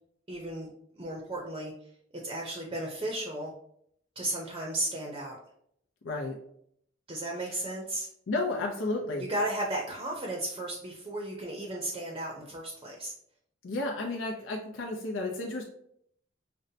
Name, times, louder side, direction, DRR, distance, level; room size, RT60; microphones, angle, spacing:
voice 1, 0.3-0.7 1.0-1.7 2.2-3.5 4.2-5.4 7.1-8.1 9.2-13.1, right 1 dB, 25° right, -1 dB, 0.6 m, -34 dB
voice 2, 6.0-6.4 7.5-7.6 8.3-9.2 13.6-15.6, left 2 dB, 80° left, 0 dB, 0.6 m, -32 dB
5.3 x 2.1 x 2.7 m, 0.69 s
head